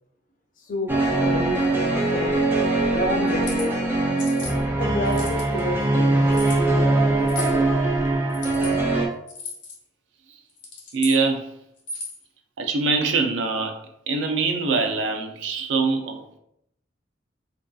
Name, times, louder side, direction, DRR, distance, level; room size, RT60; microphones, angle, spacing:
voice 1, 0.6-2.4 2.9-3.7 4.8-8.2, equal, 50° left, 0 dB, 0.6 m, -30 dB
sound 1, 0.9-9.1, right 2 dB, 10° right, 0.3 m, -22 dB
sound 2, 3.3-3.7 4.2-4.5 5.1-5.6 6.3-6.6 7.3-7.6 8.3-8.7 9.3-9.8 10.5-11.2 11.8-12.2, left 3 dB, 85° left, 0.8 m, -35 dB
voice 2, 10.9-11.6 12.6-13.8 14.1-16.4, right 4 dB, 85° right, 4 dB, 0.4 m, -23 dB
2.6 x 2.3 x 2.2 m, 0.76 s
head